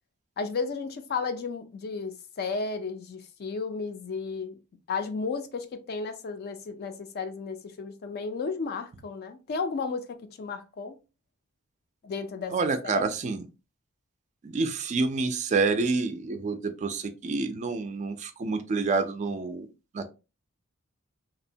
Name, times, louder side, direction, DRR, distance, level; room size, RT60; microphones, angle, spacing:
voice 1, 0.4-4.6 4.9-11.0 12.0-13.0, left 4 dB, 50° left, 0.4 m, -33 dB
voice 2, 12.5-13.5 14.4-19.7 19.9-20.1, right 4 dB, 35° right, 0.3 m, -28 dB
2.8 x 2.0 x 2.6 m
head